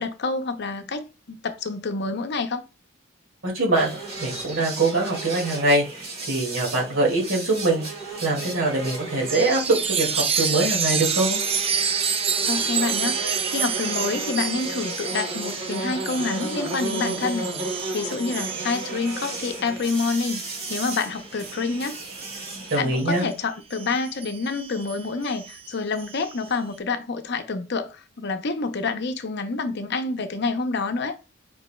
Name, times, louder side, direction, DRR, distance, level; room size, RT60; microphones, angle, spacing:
voice 1, 0.0-2.6 12.4-22.0 22.8-31.2, left 4 dB, 55° left, 0.6 m, -28 dB
voice 2, 3.4-3.9 4.2-5.8 6.3-7.8 8.2-11.4 22.7-23.3, right 2 dB, 65° right, 2.1 m, -23 dB
sound 1, 3.7-22.8, right 2 dB, 50° right, 1.9 m, -34 dB
Chime, 9.3-23.2 23.7-26.5, right 7 dB, 30° right, 0.3 m, -29 dB
5.2 x 4.6 x 2.2 m
head